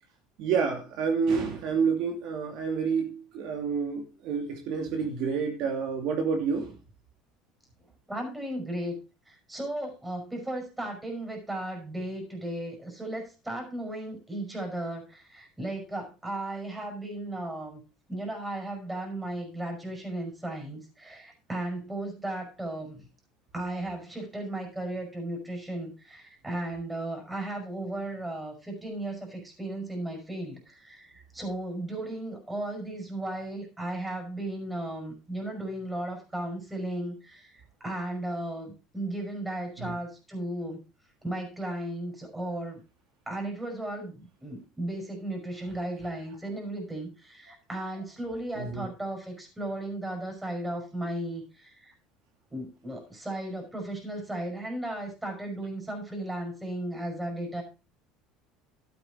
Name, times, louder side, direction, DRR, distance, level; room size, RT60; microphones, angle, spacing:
voice 1, 0.4-6.7 39.8-39.9 48.6-48.8, right 5 dB, 65° right, 3 dB, 2.5 m, -29 dB
voice 2, 8.1-9.0 9.3-17.8 18.1-23.0 23.5-40.8 41.2-42.8 43.3-51.9 52.5-57.6, right 1 dB, 10° right, 2 dB, 5.3 m, -35 dB
12.5 x 8.7 x 3.8 m, 0.30 s
supercardioid pair, 115°, 0 cm